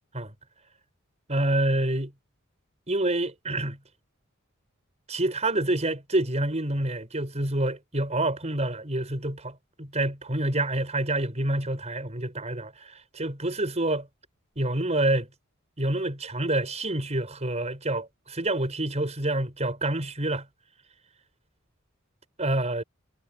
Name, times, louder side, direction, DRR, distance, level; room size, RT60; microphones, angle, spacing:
voice 1, 1.3-2.1 2.9-3.8 5.1-14.1 14.6-15.3 15.8-20.5 22.4-22.8, right 1 dB, 35° right, 5.7 m, -27 dB
head